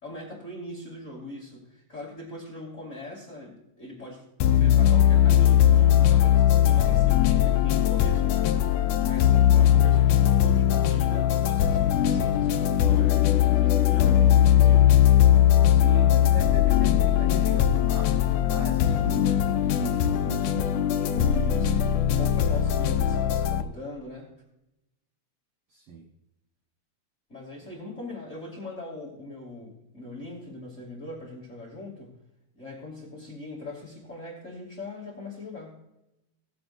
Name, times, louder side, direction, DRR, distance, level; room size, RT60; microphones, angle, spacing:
voice 1, 0.0-4.3 4.5-8.5 8.8-15.0 21.1-24.3 27.3-32.1 32.5-35.8, left 2 dB, 25° left, -3 dB, 2.8 m, -41 dB
sound 1, 4.4-23.6, left 11 dB, 75° left, 1.8 m, -20 dB
voice 2, 15.7-21.7 25.7-26.1, right 5 dB, 60° right, 1 dB, 1.8 m, -39 dB
19.0 x 7.8 x 2.6 m, 0.89 s
omnidirectional pair, 3.4 m